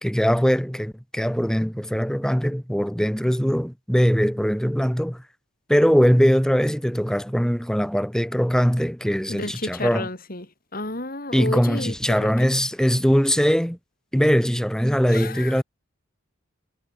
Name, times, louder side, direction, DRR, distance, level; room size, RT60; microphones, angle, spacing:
voice 1, 0.0-5.2 5.7-10.1 11.3-13.8 14.1-15.6, equal, 5° left, 4.0 m, -21 dB
voice 2, 9.3-10.5 10.7-12.5 15.1-15.6, left 2 dB, 45° left, 4.3 m, -32 dB
head